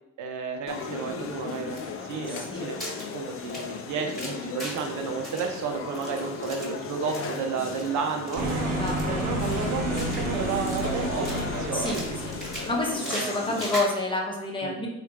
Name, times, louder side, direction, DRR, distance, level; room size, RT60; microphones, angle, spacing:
voice 1, 0.2-1.8 2.1-8.7 9.1-12.1 13.0-13.4 14.6-14.8, right 5 dB, 75° right, 3 dB, 0.6 m, -32 dB
sound 1, 0.7-13.8, left 5 dB, 45° left, 0.4 m, -37 dB
sound 2, 1.8-4.9 5.2-7.4 7.7-7.9 8.2-8.5 8.9-10.4 10.7-11.5 11.8-14.0, equal, ahead, 1.3 m, -39 dB
voice 2, 2.3-2.7 8.7-9.2 11.7-12.0 12.3-12.4 12.7-14.9, left 2 dB, 15° left, -2 dB, 0.8 m, -29 dB
sound 3, 8.3-13.0, right 1 dB, 55° right, 1.0 m, -30 dB
3.2 x 2.4 x 3.1 m, 0.85 s
cardioid pair, 90°, 30 cm